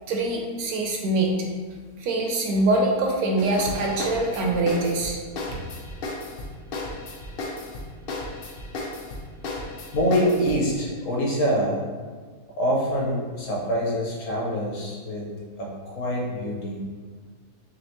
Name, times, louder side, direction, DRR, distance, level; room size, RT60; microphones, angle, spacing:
voice 1, 0.1-1.3 2.0-5.2, right 2 dB, 75° right, 0 dB, 1.0 m, -24 dB
sound 1, 3.4-10.6, left 2 dB, 85° left, 0.5 m, -34 dB
voice 2, 9.9-11.8 12.6-15.3 15.6-16.8, equal, 60° left, -3 dB, 1.1 m, -25 dB
4.3 x 2.8 x 2.9 m, 1.5 s
omnidirectional pair, 1.7 m